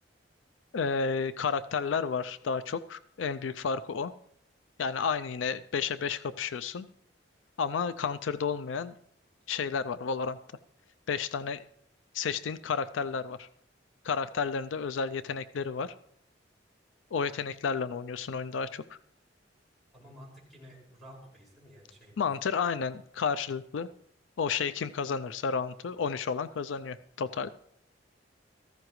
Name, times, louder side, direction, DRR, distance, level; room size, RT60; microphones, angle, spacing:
voice 1, 0.7-4.1 4.8-6.9 7.6-8.9 9.5-10.4 11.1-11.6 12.1-13.5 14.0-15.9 17.1-19.0 22.2-23.9 24.4-27.5, left 5 dB, 80° left, 13 dB, 0.4 m, -31 dB
voice 2, 19.9-22.1, equal, ahead, -4 dB, 5.6 m, -51 dB
17.0 x 14.5 x 3.1 m, 0.70 s
head